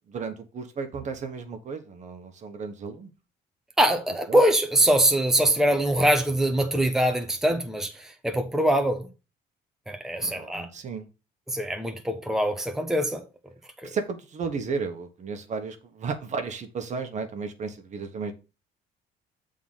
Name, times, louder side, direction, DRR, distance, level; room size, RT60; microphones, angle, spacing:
voice 1, 0.1-3.1 4.3-4.4 10.2-11.1 13.8-18.3, right 5 dB, 45° right, 1.3 m, -34 dB
voice 2, 3.8-9.1 9.9-10.7 11.5-13.2 13.8-13.9, right 1 dB, 5° right, 1.0 m, -23 dB
7.1 x 3.9 x 5.7 m
cardioid pair, 110°, 17 cm